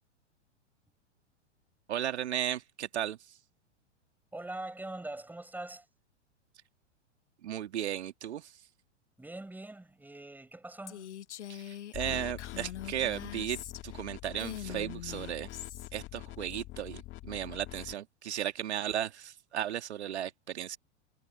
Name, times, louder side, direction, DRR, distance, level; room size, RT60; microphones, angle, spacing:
voice 1, 1.9-3.4 7.4-8.6 11.5-15.5 15.9-20.8, right 11 dB, 65° right, 2.2 m, -35 dB
voice 2, 4.3-5.9 9.2-11.1, right 2 dB, 5° right, 6.4 m, -42 dB
Female speech woman speaking, 10.9-14.0 14.4-15.9, left 10 dB, 70° left, 1.6 m, -43 dB
sound 1, 11.9-17.9, left 16 dB, 35° left, 2.1 m, -44 dB
figure-of-eight pair, 105°, 36 cm